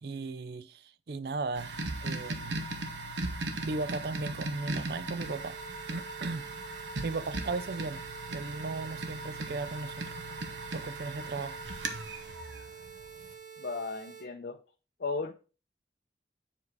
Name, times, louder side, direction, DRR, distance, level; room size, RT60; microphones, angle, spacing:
voice 1, 0.0-2.6 3.6-5.6 5.9-6.5 7.0-8.0 8.3-10.0 10.7-11.6, right 3 dB, 60° right, 0.4 m, -36 dB
sound 1, 1.5-13.3, right 2 dB, 85° right, 1.1 m, -38 dB
sound 2, 5.2-14.2, right 7 dB, 40° right, 4.0 m, -48 dB
voice 2, 13.6-14.6 15.0-15.3, left 4 dB, 65° left, 0.6 m, -35 dB
7.5 x 4.7 x 4.7 m
head